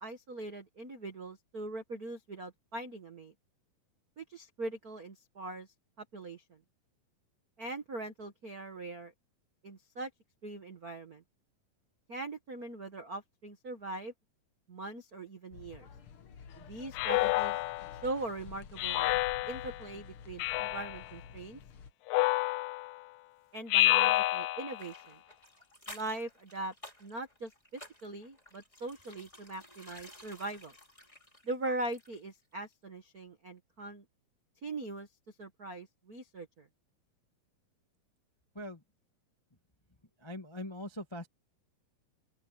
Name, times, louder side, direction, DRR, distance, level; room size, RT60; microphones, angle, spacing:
voice 1, 0.0-3.3 4.2-5.7 6.0-6.4 7.6-9.1 9.6-10.1 10.4-11.2 12.1-14.1 14.7-15.9 16.6-17.6 18.0-19.1 19.5-21.6 23.5-25.2 25.9-26.7 27.0-30.7 31.4-34.0 34.6-35.1 35.4-36.7, right 2 dB, 75° right, 0.8 m, -41 dB
sound 1, 15.5-21.9, left 6 dB, 65° left, 1.3 m, -50 dB
Speech synthesizer, 16.9-18.1 18.8-19.8 20.4-21.1 22.1-23.0 23.7-24.9, left 18 dB, 90° left, 2.7 m, -29 dB
sound 2, 24.8-32.4 32.6-32.7, left 1 dB, 10° left, 5.1 m, -53 dB
voice 2, 40.2-41.3, left 1 dB, 25° left, 0.5 m, -41 dB
open air
omnidirectional pair, 4.3 m